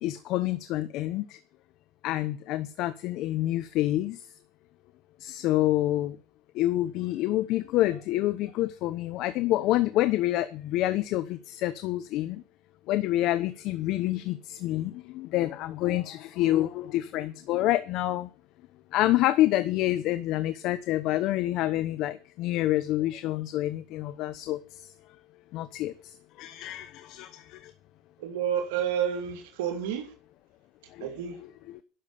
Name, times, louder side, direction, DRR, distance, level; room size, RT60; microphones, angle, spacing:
voice 1, 0.0-1.4 2.0-4.2 5.2-6.2 6.5-12.4 12.9-18.3 18.9-24.9 25.5-27.7 30.9-31.1 31.7-31.8, left 15 dB, 60° left, 0.9 m, -27 dB
voice 2, 28.2-30.1 31.0-31.4, right 9 dB, 85° right, 2.5 m, -30 dB
11.5 x 7.4 x 8.6 m
supercardioid pair, 110°, 0 cm